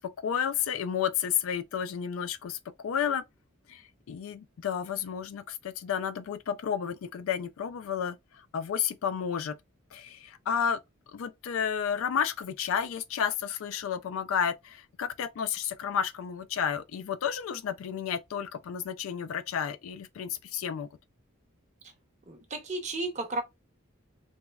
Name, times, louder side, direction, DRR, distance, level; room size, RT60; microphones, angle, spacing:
voice 1, 0.0-3.2 3.7-9.6 9.9-10.8 11.1-20.9, left 8 dB, 85° left, 0.3 m, -31 dB
voice 2, 22.3-23.4, right 2 dB, 35° right, 0.6 m, -33 dB
3.0 x 2.1 x 2.3 m
head